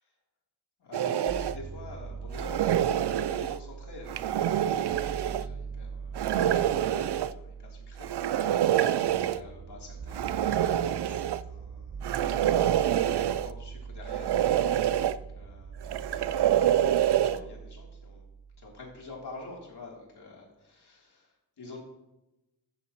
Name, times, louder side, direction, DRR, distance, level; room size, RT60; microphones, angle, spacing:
voice 1, 0.8-5.0 5.2-8.6 9.1-10.6 10.9-14.8 15.1-16.7 17.0-18.2 18.6-21.8, left 2 dB, 85° left, -3 dB, 3.4 m, -47 dB
sound 1, 0.9-1.6 2.3-3.6 4.1-5.4 6.2-7.3 8.0-9.4 10.1-11.4 12.0-13.5 14.1-15.2 15.8-17.4, right 11 dB, 85° right, 0.5 m, -26 dB
sound 2, 1.3-19.2, right 6 dB, 30° right, 0.5 m, -42 dB
14.5 x 9.9 x 3.1 m, 0.98 s
wide cardioid pair, 95°, 39 cm